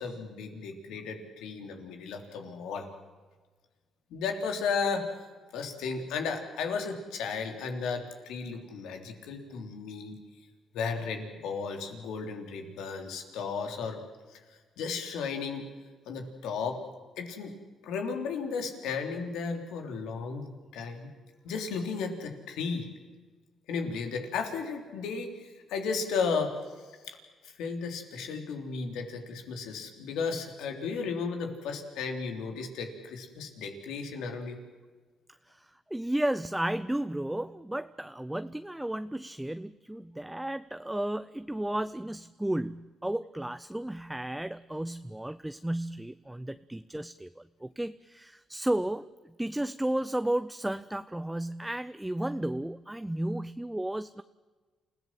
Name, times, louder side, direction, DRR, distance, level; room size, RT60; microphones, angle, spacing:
voice 1, 0.0-2.9 4.1-5.1 5.5-10.2 10.7-14.0 14.3-15.6 16.1-16.8 17.2-17.5 17.8-21.1 21.4-22.9 23.7-27.2 27.4-34.6, left 5 dB, 90° left, 4 dB, 3.6 m, -34 dB
voice 2, 35.9-54.2, right 1 dB, 10° right, 13 dB, 0.6 m, -33 dB
28.5 x 16.5 x 7.6 m, 1.4 s
cardioid pair, 90°, 0 cm